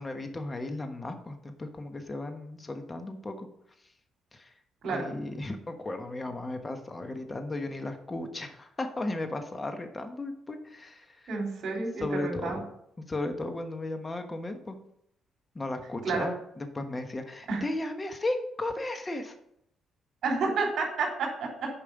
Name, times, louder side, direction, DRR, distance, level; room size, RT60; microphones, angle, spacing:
voice 1, 0.0-3.5 4.3-4.5 4.9-11.3 12.0-12.7 13.1-14.8 15.5-19.4, left 2 dB, 25° left, 6 dB, 1.3 m, -35 dB
voice 2, 11.3-12.6 16.0-16.3 17.5-17.6 20.2-21.7, right 4 dB, 65° right, 0 dB, 3.4 m, -30 dB
8.7 x 5.4 x 5.4 m, 0.74 s
cardioid pair, 90°, 0 cm